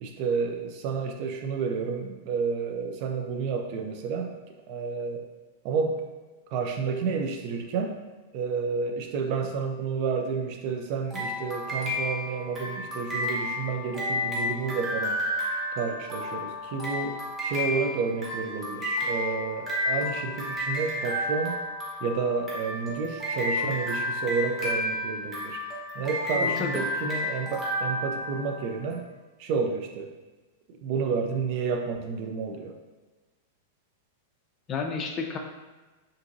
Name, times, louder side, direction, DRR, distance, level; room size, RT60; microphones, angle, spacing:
voice 1, 0.0-4.3 4.7-5.2 5.6-6.0 6.5-7.9 8.3-15.2 15.7-21.6 22.0-25.6 25.9-29.1 29.4-30.1 30.7-32.8, right 5 dB, 45° right, 4 dB, 0.4 m, -30 dB
sound 1, 11.1-28.8, left 1 dB, 15° right, 0.9 m, -31 dB
voice 2, 26.4-26.8 34.7-35.4, left 5 dB, 30° left, 3 dB, 0.4 m, -31 dB
2.7 x 2.5 x 2.6 m, 1.2 s
figure-of-eight pair, 95°, 0 cm